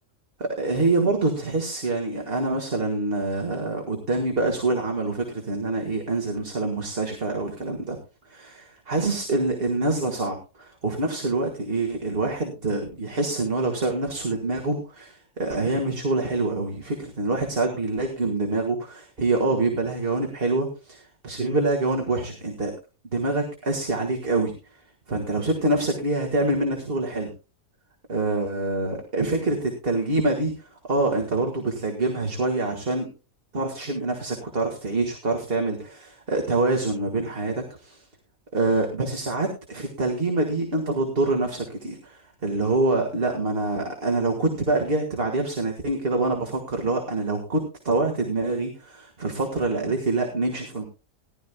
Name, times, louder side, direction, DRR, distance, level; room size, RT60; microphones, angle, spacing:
voice 1, 0.4-8.0 8.3-22.7 23.1-24.5 25.1-27.3 28.1-30.6 30.9-33.1 33.5-38.0 38.5-50.8, right 2 dB, 45° right, 2 dB, 2.0 m, -26 dB
18.5 x 11.5 x 2.2 m, 0.31 s
omnidirectional pair, 1.5 m